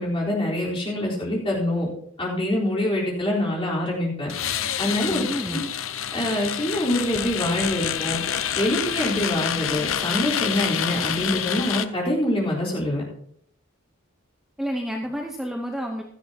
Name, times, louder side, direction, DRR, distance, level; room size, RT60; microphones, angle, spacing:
voice 1, 0.0-1.9 2.2-4.3 4.8-5.2 5.5-5.6 6.1-8.2 8.5-13.0, left 1 dB, 25° left, -5 dB, 4.1 m, -25 dB
sound 1, 4.3-11.9, left 9 dB, 80° left, 0.7 m, -28 dB
voice 2, 5.1-5.6 14.6-16.0, equal, ahead, 0 dB, 0.9 m, -29 dB
16.5 x 12.5 x 2.9 m, 0.68 s
head